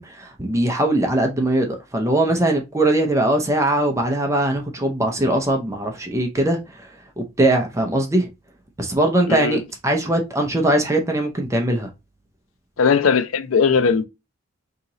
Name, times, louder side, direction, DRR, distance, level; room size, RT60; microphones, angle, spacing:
voice 1, 0.0-6.9 7.2-8.3 8.8-11.9, right 1 dB, 15° right, 0.5 m, -21 dB
voice 2, 9.3-9.6 12.8-14.0, left 5 dB, 90° left, 0.5 m, -18 dB
2.8 x 2.8 x 3.8 m
head